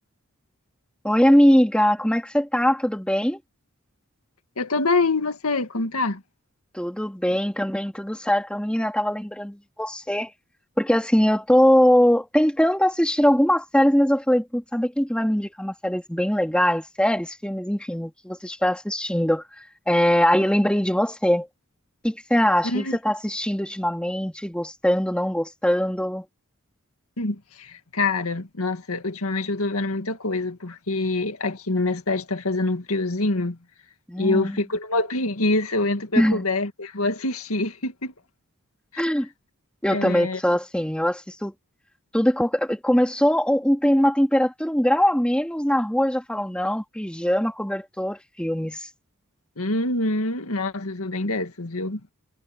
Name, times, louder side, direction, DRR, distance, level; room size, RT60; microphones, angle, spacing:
voice 1, 1.0-3.4 6.7-10.3 10.8-19.4 19.9-21.5 22.0-26.2 34.1-34.6 36.2-36.4 39.0-39.3 39.8-41.5 42.1-48.9, equal, 5° left, 2.4 m, -21 dB
voice 2, 4.6-6.2 22.6-23.0 27.2-33.6 34.2-38.1 38.9-39.0 39.9-40.4 49.6-52.0, left 2 dB, 85° left, 2.0 m, -25 dB
head